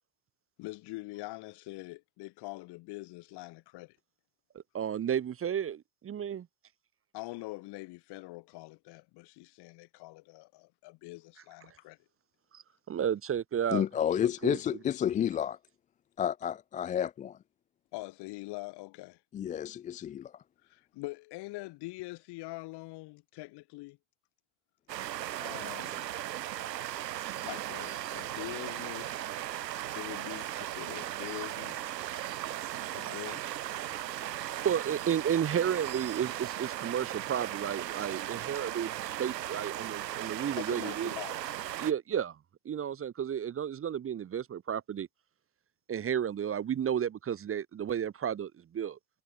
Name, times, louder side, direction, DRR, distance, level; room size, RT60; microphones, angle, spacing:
voice 1, 0.6-4.0 7.1-12.0 17.9-19.2 20.6-24.0 25.4-26.1 27.4-29.3 29.9-31.9 32.9-33.4 40.6-41.4, left 22 dB, 50° left, 3.0 m, -44 dB
voice 2, 4.7-6.5 12.5-12.6 12.9-13.8 14.2-14.6 34.6-41.1 41.8-42.4 42.6-45.1 45.9-49.0, right 9 dB, 25° right, 1.2 m, -32 dB
voice 3, 13.7-15.6 16.2-17.4 19.3-20.3, left 9 dB, 15° left, 0.4 m, -30 dB
sound 1, 24.9-41.9, right 13 dB, 80° right, 0.9 m, -37 dB
figure-of-eight pair, 70°, 49 cm